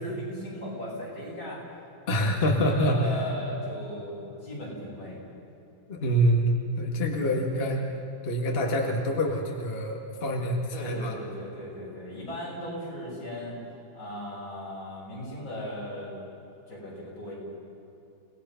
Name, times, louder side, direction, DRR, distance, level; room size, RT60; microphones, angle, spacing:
voice 1, 0.0-1.6 2.3-4.2 4.4-5.2 7.2-7.4 10.7-13.5 13.9-16.1 16.7-17.3, left 1 dB, 75° left, -5 dB, 8.3 m, -37 dB
voice 2, 2.1-3.2 5.9-7.9 8.2-11.1, equal, 30° left, 1 dB, 1.8 m, -26 dB
29.5 x 18.5 x 5.7 m, 2.8 s
omnidirectional pair, 2.2 m